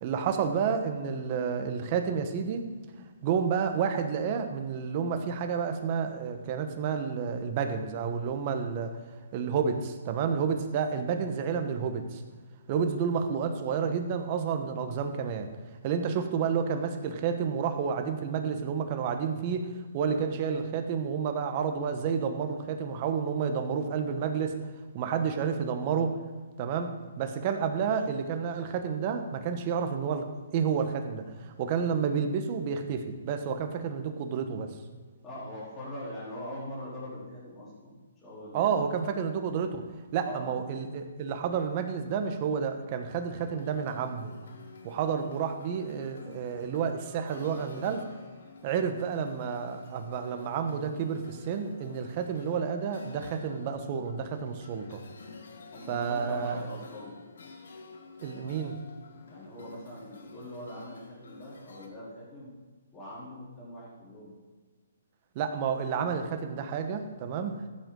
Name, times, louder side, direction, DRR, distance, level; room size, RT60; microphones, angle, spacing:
voice 1, 0.0-2.7 3.2-9.0 9.3-12.2 12.7-15.5 15.8-19.7 19.9-24.5 24.9-26.2 26.6-34.8 38.5-39.8 40.1-44.3 44.8-48.0 48.6-55.0 55.9-56.6 58.2-58.7 65.3-67.6, right 6 dB, 35° right, 6 dB, 1.2 m, -30 dB
voice 2, 35.2-37.9 38.2-39.0 40.1-40.6 55.7-57.1 59.3-62.5 62.9-64.3, left 1 dB, 15° left, -9 dB, 3.9 m, -42 dB
sound 1, 43.1-61.9, left 3 dB, 70° left, 1.7 m, -50 dB
14.5 x 8.2 x 3.9 m, 1.4 s
hypercardioid pair, 155°, 0 cm